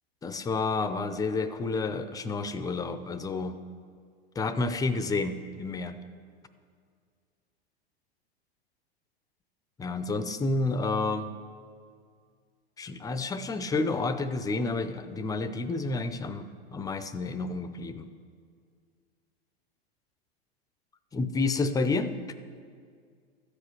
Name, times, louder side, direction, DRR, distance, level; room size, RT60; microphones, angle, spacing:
voice 1, 0.2-3.6 4.4-6.0 9.8-11.3 12.8-18.1 21.1-22.1, left 3 dB, 10° left, 11 dB, 0.5 m, -30 dB
13.0 x 5.0 x 8.3 m, 2.1 s
hypercardioid pair, 105°, 32 cm